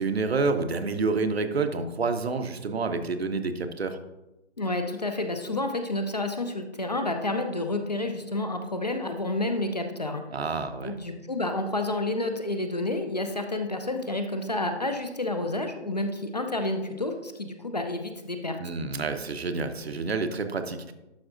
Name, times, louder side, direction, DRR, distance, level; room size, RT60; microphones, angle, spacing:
voice 1, 0.0-4.0 10.3-10.9 18.6-20.9, right 4 dB, 60° right, 8 dB, 0.8 m, -28 dB
voice 2, 4.6-10.2 10.8-18.6, left 2 dB, 40° left, 6 dB, 0.5 m, -30 dB
11.5 x 5.3 x 2.5 m, 0.98 s
hypercardioid pair, 165°, 35 cm